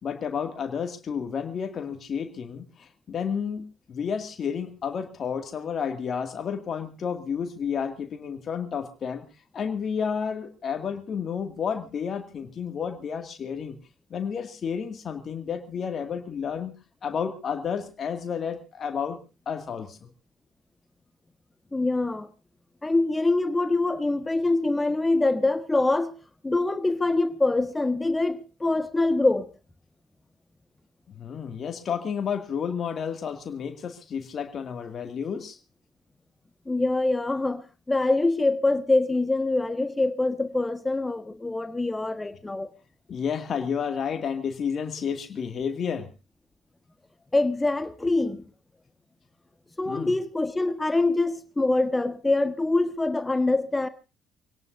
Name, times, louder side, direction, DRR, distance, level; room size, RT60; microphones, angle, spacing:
voice 1, 0.0-9.3 9.5-13.8 14.1-16.7 17.0-19.2 19.5-20.1 31.1-35.6 43.1-46.1 49.9-50.1, left 7 dB, 45° left, 2.2 m, -31 dB
voice 2, 21.7-22.3 22.8-26.1 26.4-29.5 36.7-42.7 47.3-48.4 49.8-53.9, left 2 dB, 15° left, 1.5 m, -24 dB
24.5 x 17.5 x 2.7 m
figure-of-eight pair, 50°, 0 cm